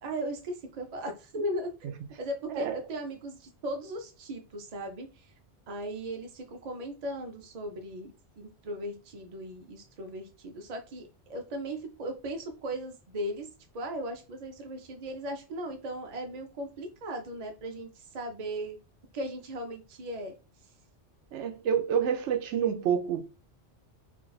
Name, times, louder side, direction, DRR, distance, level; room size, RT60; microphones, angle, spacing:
voice 1, 0.0-1.8 2.2-5.3 5.7-13.5 13.7-18.8 19.1-20.3, right 1 dB, 45° right, 0.6 m, -37 dB
voice 2, 21.3-23.2, right 8 dB, 75° right, 0.9 m, -28 dB
2.6 x 2.3 x 3.9 m
omnidirectional pair, 1.2 m